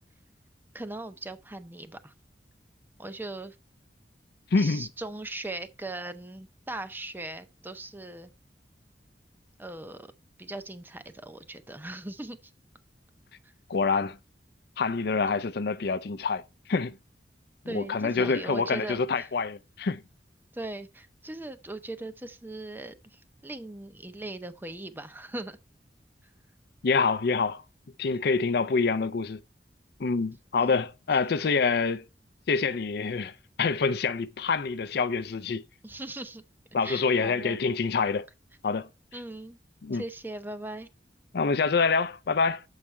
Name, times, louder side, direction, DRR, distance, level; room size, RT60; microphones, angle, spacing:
voice 1, 0.7-2.1 3.0-3.6 4.6-8.3 9.6-10.1 10.4-12.4 13.4-13.5 17.7-19.3 20.5-25.6 30.6-30.8 35.8-36.4 36.8-37.6 39.1-39.6 39.9-40.9, right 2 dB, 10° right, 0.6 m, -39 dB
voice 2, 4.5-4.9 13.7-14.2 14.8-16.4 16.7-16.9 17.7-20.0 26.8-27.6 28.0-29.4 30.0-32.0 32.5-35.6 36.7-38.3 38.6-38.9 39.8-40.0 41.3-42.6, left 4 dB, 65° left, 0.5 m, -26 dB
7.3 x 4.9 x 4.2 m
head